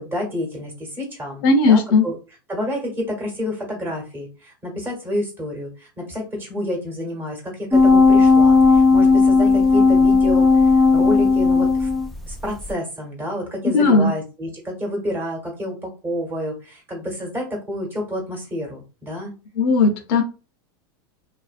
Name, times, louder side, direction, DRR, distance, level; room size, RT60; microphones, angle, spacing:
voice 1, 0.0-2.2 2.5-11.9 12.3-19.3, left 1 dB, 15° right, 0 dB, 1.2 m, -29 dB
voice 2, 1.4-2.0 13.7-14.1 19.6-20.2, left 3 dB, 60° left, 5 dB, 0.7 m, -16 dB
sound 1, 7.7-12.3 12.7-12.8, left 4 dB, ahead, 0.4 m, -14 dB
2.5 x 2.2 x 2.4 m, 0.32 s
hypercardioid pair, 115°, 12 cm